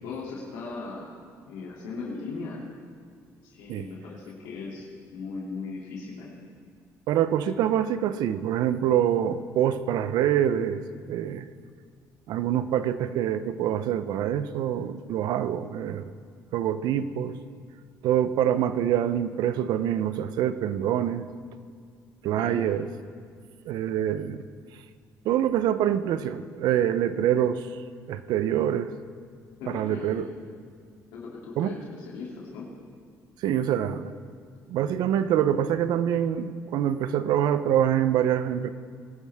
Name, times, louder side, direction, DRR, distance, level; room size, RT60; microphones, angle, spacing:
voice 1, 0.0-2.6 3.4-6.4 22.3-22.6 29.6-30.3 31.1-32.7, left 4 dB, 90° left, -4 dB, 2.7 m, -38 dB
voice 2, 7.1-10.8 11.1-11.5 12.3-16.0 16.5-17.4 18.0-21.2 22.2-22.9 23.7-24.5 25.2-27.7 28.1-28.9 29.7-30.3 31.6-31.7 33.4-34.1 34.7-38.7, right 10 dB, 75° right, 13 dB, 0.7 m, -25 dB
21.0 x 12.5 x 3.6 m, 2.1 s
supercardioid pair, 75°, 7 cm